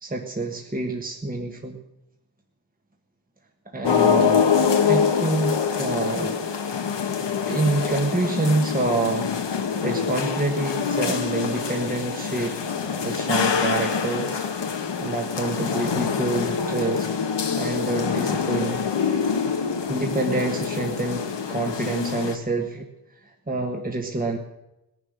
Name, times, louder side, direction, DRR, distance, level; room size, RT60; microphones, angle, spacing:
voice 1, 0.0-1.8 3.6-4.5 4.9-6.4 7.5-9.3 9.8-12.5 13.0-14.4 15.0-17.1 17.5-18.8 19.9-22.8 23.2-24.4, right 2 dB, 20° right, 2 dB, 1.5 m, -27 dB
sound 1, 3.8-22.4, left 6 dB, 80° left, 1.5 m, -25 dB
19.0 x 11.0 x 6.5 m, 0.91 s
wide cardioid pair, 110°, 42 cm